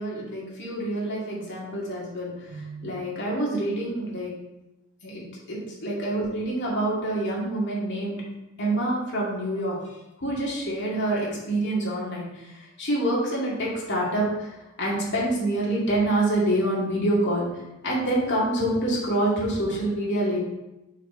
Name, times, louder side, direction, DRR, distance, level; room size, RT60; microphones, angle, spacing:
voice 1, 0.0-4.3 5.0-5.2 5.5-8.2 8.6-9.8 10.2-12.5 12.8-17.5 17.8-20.4, right 1 dB, 55° left, -5 dB, 2.2 m, -26 dB
6.4 x 4.3 x 4.3 m, 0.99 s
head